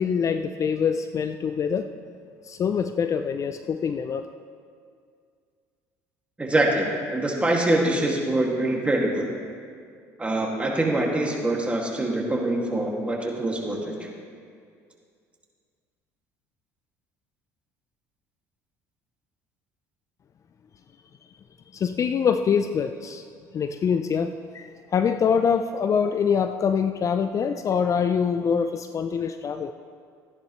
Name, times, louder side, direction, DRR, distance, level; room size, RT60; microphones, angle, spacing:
voice 1, 0.0-1.9 2.5-4.3 21.7-23.2 23.5-29.7, left 6 dB, 40° left, 9 dB, 0.5 m, -24 dB
voice 2, 6.4-9.3 10.2-13.9, right 1 dB, 15° right, -1 dB, 2.2 m, -24 dB
14.0 x 10.5 x 3.2 m, 2.2 s
supercardioid pair, 75°, 8 cm